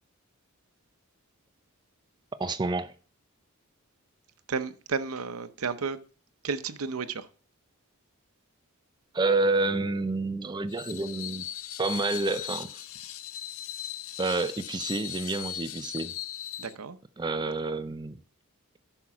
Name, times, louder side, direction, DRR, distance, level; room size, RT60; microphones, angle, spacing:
voice 1, 2.4-2.9 9.1-11.5 11.8-12.8 14.2-16.2 17.2-18.2, right 3 dB, 20° right, 0.4 m, -29 dB
voice 2, 4.5-6.0 6.4-7.3 16.6-17.0, right 5 dB, 85° right, 0.7 m, -32 dB
Screech, 10.7-16.7, left 11 dB, 70° left, 0.5 m, -38 dB
10.0 x 5.9 x 4.9 m
head